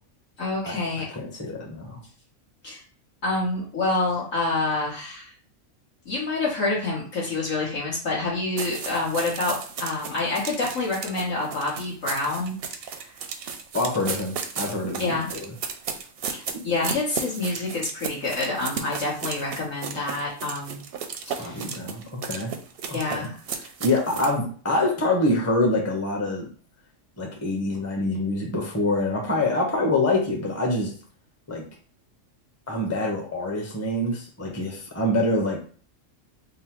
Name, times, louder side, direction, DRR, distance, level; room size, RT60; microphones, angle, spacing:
voice 1, 0.4-1.1 2.6-2.8 3.2-5.3 6.0-13.1 15.0-15.3 16.3-20.8 21.3-21.7 22.9-23.4, left 2 dB, 70° left, -6 dB, 1.6 m, -27 dB
voice 2, 1.1-2.0 13.7-15.5 21.4-22.5 22.9-23.3 23.8-26.4 27.2-30.9 31.5-31.6 32.7-35.6, left 2 dB, 15° left, -1 dB, 0.6 m, -25 dB
sound 1, 8.6-24.4, right 6 dB, 65° right, 0.6 m, -34 dB
3.7 x 2.0 x 4.4 m, 0.42 s
omnidirectional pair, 1.4 m